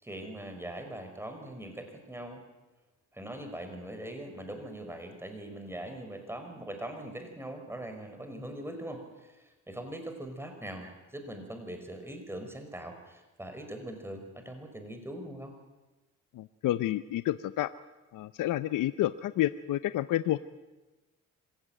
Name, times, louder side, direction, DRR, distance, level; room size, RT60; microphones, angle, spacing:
voice 1, 0.0-2.4 3.1-15.5, right 1 dB, 10° right, 6 dB, 5.3 m, -41 dB
voice 2, 16.3-17.7 18.1-20.4, left 14 dB, 75° left, 13 dB, 0.7 m, -29 dB
25.5 x 16.5 x 9.1 m, 1.2 s
cardioid pair, 85°, 32 cm